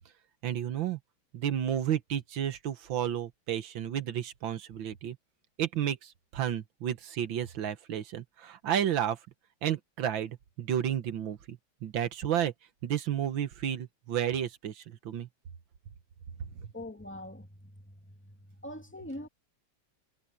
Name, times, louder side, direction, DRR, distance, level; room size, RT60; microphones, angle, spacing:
voice 1, 0.4-1.0 1.3-5.2 5.6-9.2 9.6-12.5 12.8-15.3, right 10 dB, 80° right, 1.9 m, -32 dB
voice 2, 16.7-18.3 18.6-19.3, left 1 dB, 5° left, 2.1 m, -43 dB
omnidirectional pair, 2.1 m